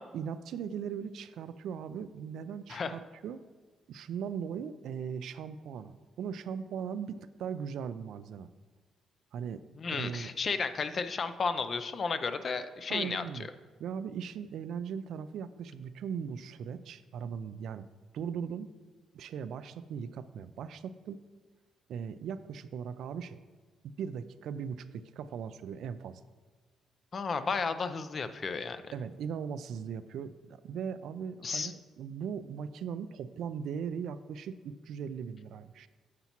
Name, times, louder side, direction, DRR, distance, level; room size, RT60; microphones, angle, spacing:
voice 1, 0.0-3.4 3.9-8.5 9.3-9.6 9.9-10.3 12.9-13.5 13.8-17.9 18.1-18.7 19.1-21.2 21.9-23.4 23.8-26.2 28.9-35.9, right 7 dB, 75° right, 12 dB, 0.4 m, -39 dB
voice 2, 9.8-13.2 27.1-28.8 31.4-31.7, left 5 dB, 45° left, 11 dB, 0.5 m, -33 dB
9.5 x 7.0 x 3.0 m, 1.5 s
cardioid pair, 90°, 0 cm